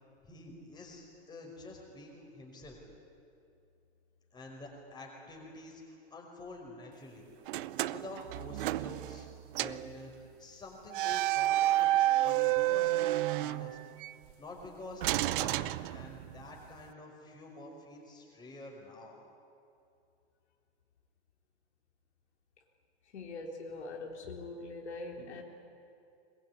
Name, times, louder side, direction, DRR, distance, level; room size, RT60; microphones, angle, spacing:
voice 1, 0.2-2.8 4.3-7.3 7.9-13.8 14.4-19.2, left 2 dB, 10° left, -1 dB, 5.1 m, -48 dB
sound 1, 7.5-9.3 9.6-9.9 10.9-14.1 15.0-16.4, right 15 dB, 50° right, 0.7 m, -30 dB
voice 2, 23.1-25.4, left 3 dB, 80° left, 2 dB, 3.6 m, -42 dB
21.5 x 21.0 x 9.5 m, 2.6 s
hypercardioid pair, 135°, 33 cm